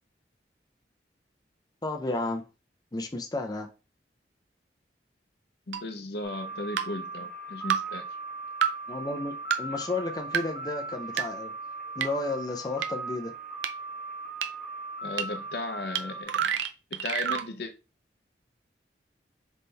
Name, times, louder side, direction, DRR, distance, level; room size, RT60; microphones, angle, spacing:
voice 1, 1.8-2.4 2.9-3.7 8.9-9.3 9.6-11.5 12.0-13.3, left 2 dB, 20° left, 0.6 m, -32 dB
voice 2, 5.7-8.1 15.0-16.6 16.9-17.7, left 2 dB, 60° left, 0.6 m, -36 dB
sound 1, 5.7-5.8 6.8-6.9 7.7-7.8 8.6-8.7 9.5-9.6 10.3-10.4 11.2-11.3 12.0-12.1 12.8-12.9 13.6-13.7 14.4-14.5 15.2-15.3 16.0-16.1 16.3-17.5, right 8 dB, 90° right, 0.5 m, -27 dB
sound 2, 6.2-16.2, right 3 dB, 5° left, 1.4 m, -38 dB
4.1 x 3.7 x 3.3 m
head